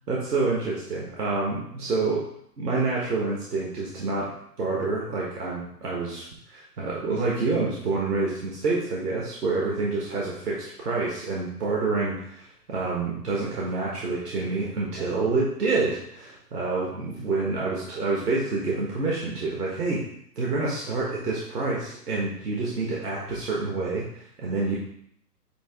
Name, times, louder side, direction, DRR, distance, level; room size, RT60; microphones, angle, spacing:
voice 1, 0.1-2.3 2.6-20.0 20.4-24.0 24.4-24.8, right 3 dB, 70° right, -4 dB, 1.7 m, -27 dB
9.0 x 3.0 x 3.6 m, 0.71 s
figure-of-eight pair, 125°, 48 cm